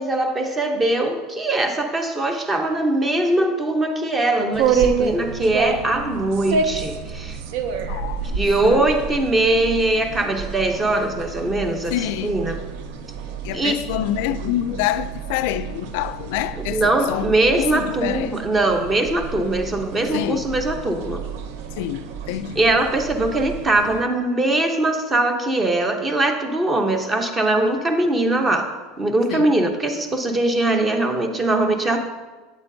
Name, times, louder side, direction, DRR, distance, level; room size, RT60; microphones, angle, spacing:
voice 1, 0.0-7.4 8.3-11.9 12.2-12.6 13.5-13.8 16.7-21.2 22.6-32.0, right 2 dB, 15° right, 5 dB, 0.7 m, -21 dB
sound 1, 4.5-24.0, right 6 dB, 70° right, 0.6 m, -29 dB
voice 2, 7.8-8.9 11.9-12.4 13.4-18.4 20.1-20.5 21.8-22.6 29.3-29.6 31.8-32.0, left 12 dB, 65° left, 13 dB, 0.3 m, -27 dB
8.3 x 7.9 x 2.7 m, 1.3 s
supercardioid pair, 145°, 0 cm